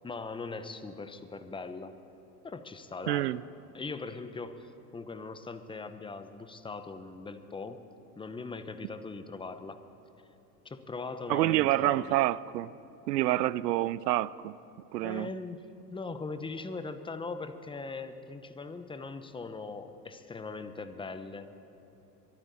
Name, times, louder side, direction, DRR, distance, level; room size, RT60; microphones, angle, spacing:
voice 1, 0.0-2.0 2.4-3.4 3.7-7.8 8.2-9.8 10.6-12.2 15.0-21.5, left 4 dB, 10° left, 10 dB, 0.8 m, -40 dB
voice 2, 3.1-3.4 11.3-12.7 13.1-14.6 14.9-15.3, right 16 dB, 75° right, 20 dB, 0.6 m, -27 dB
23.5 x 13.5 x 4.2 m, 3.0 s
hypercardioid pair, 90°, 49 cm